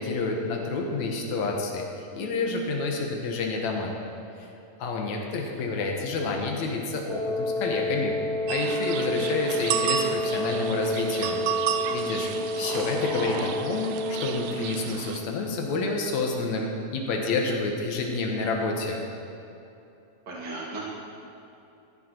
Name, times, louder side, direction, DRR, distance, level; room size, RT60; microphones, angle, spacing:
voice 1, 0.0-3.9 4.4-4.5 4.8-8.2 8.5-11.4 11.9-12.3 12.6-19.0, left 3 dB, 60° left, 1 dB, 2.1 m, -29 dB
Wind instrument woodwind instrument, 7.1-14.9, left 2 dB, 55° right, 2.5 m, -30 dB
sound 1, 8.5-15.2, right 9 dB, 80° right, 2.4 m, -32 dB
voice 2, 12.6-13.5 20.3-20.8, right 2 dB, 30° right, -5 dB, 2.8 m, -35 dB
14.0 x 11.5 x 4.5 m, 2.9 s
omnidirectional pair, 4.4 m